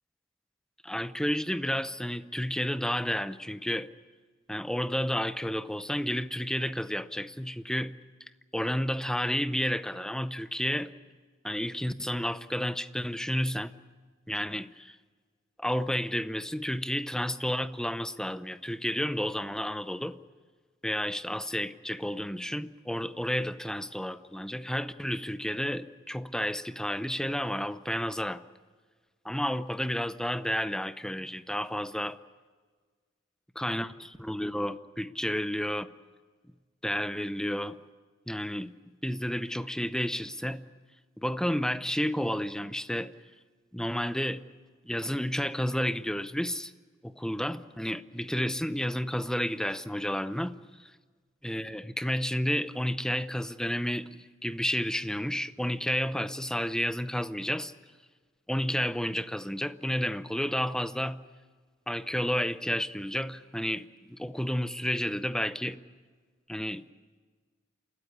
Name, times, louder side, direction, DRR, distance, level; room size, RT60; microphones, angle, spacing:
voice 1, 0.8-3.9 4.5-7.9 8.5-10.9 11.4-13.7 14.3-15.0 15.6-20.2 20.8-28.4 29.2-32.2 33.6-33.9 34.2-35.9 36.8-37.8 38.3-38.7 39.0-40.6 41.2-43.1 43.7-44.4 44.9-46.7 47.0-50.5 50.8-50.9 51.4-54.2 54.4-57.7 58.5-61.2 61.9-65.8 66.5-66.8, equal, 5° left, 12 dB, 0.7 m, -31 dB
29.5 x 13.5 x 9.8 m, 1.5 s
head